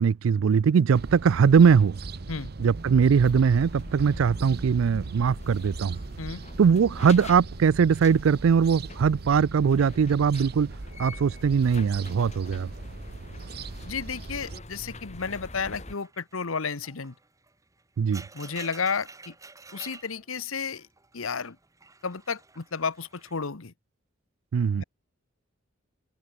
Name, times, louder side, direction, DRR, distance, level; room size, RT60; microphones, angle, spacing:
voice 1, 0.0-2.0 2.6-6.0 6.6-10.7 11.0-12.7 18.0-18.2 24.5-24.8, right 6 dB, 75° right, 0.4 m, -21 dB
sound 1, 0.9-14.6, right 3 dB, 50° right, 0.7 m, -40 dB
sound 2, 3.2-15.9, left 1 dB, 35° left, 3.0 m, -44 dB
sound 3, 10.5-12.9 13.2-13.6 14.1-23.4, right 4 dB, 15° right, 2.2 m, -51 dB
voice 2, 13.8-17.1 18.3-19.3 19.7-20.9 21.1-21.6 22.0-23.7 24.8-24.9, left 5 dB, 85° left, 1.1 m, -32 dB
head